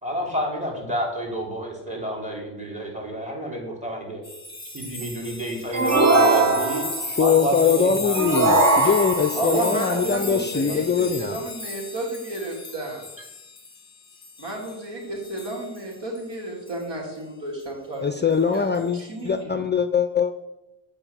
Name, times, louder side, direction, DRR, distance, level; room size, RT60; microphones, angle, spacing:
voice 1, 0.0-4.2 4.7-6.8 7.2-9.1 9.5-11.2, equal, 15° right, -1 dB, 3.0 m, -30 dB
sound 1, 4.2-14.9 15.2-16.2 16.7-16.8 18.5-18.8, left 2 dB, 10° left, 1.7 m, -34 dB
sound 2, 5.7-7.1 8.1-9.5, right 2 dB, 40° right, 1.2 m, -20 dB
voice 2, 7.0-11.4 18.0-20.4, left 6 dB, 25° left, 9 dB, 0.4 m, -22 dB
voice 3, 9.3-13.0 14.4-18.2 18.5-19.7, right 2 dB, 75° right, -2 dB, 3.1 m, -32 dB
8.1 x 5.3 x 7.3 m, 0.96 s
wide cardioid pair, 120°, 43 cm